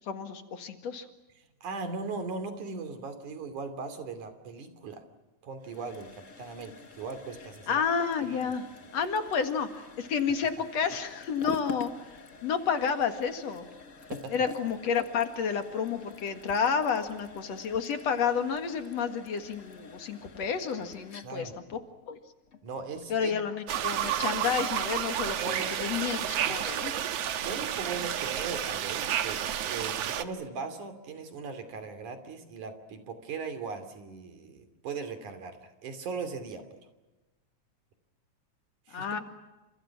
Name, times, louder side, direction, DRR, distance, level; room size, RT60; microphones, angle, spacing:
voice 1, 0.1-1.1 7.7-8.7 8.9-12.1 12.4-13.7 14.3-21.8 22.1-22.2 23.1-26.9 38.9-39.2, left 6 dB, 60° left, 7 dB, 3.0 m, -30 dB
voice 2, 1.6-5.0 5.4-6.1 6.4-7.8 8.2-8.4 14.1-14.4 21.2-21.5 22.6-23.4 25.4-26.0 26.4-26.6 27.4-36.6 38.9-39.1, right 4 dB, 90° right, 8 dB, 4.3 m, -38 dB
sound 1, 5.6-23.3, left 3 dB, 35° left, 1.3 m, -46 dB
sound 2, 23.7-30.2, right 10 dB, 65° right, 2.2 m, -31 dB
30.0 x 27.5 x 6.0 m, 1.1 s
omnidirectional pair, 3.4 m